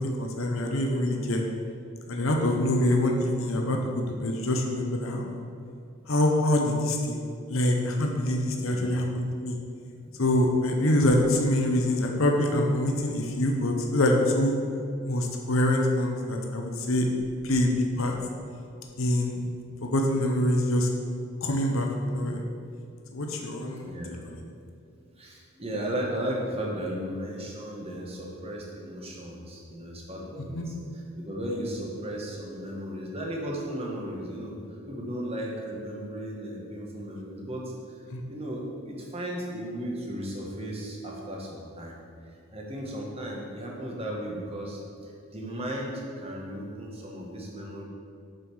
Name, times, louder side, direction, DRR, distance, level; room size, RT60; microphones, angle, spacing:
voice 1, 0.0-1.4 2.1-5.4 6.1-9.6 10.2-14.5 15.0-17.1 17.4-18.1 19.0-19.4 19.8-20.9 21.4-22.4 23.1-23.9 24.3-24.4 30.5-30.6 38.1-38.2, left 1 dB, 65° left, 1 dB, 0.9 m, -25 dB
voice 2, 8.6-9.0 10.0-10.2 18.9-19.0 19.3-19.5 23.8-24.2 24.9-30.8 31.1-34.6 34.9-38.0 38.3-42.0 42.3-47.8, right 1 dB, 25° right, -2 dB, 1.4 m, -35 dB
7.6 x 5.3 x 6.2 m, 2.4 s
head